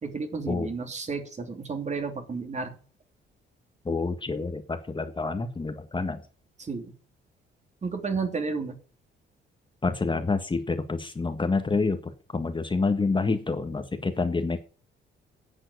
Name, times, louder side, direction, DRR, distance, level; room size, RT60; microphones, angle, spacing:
voice 1, 0.0-2.7 6.6-6.9 7.8-8.8, right 4 dB, 35° right, 6 dB, 3.0 m, -32 dB
voice 2, 3.8-6.2 9.8-14.6, left 3 dB, 25° left, 8 dB, 1.6 m, -28 dB
10.5 x 7.7 x 8.4 m, 0.41 s
cardioid pair, 90°, 20 cm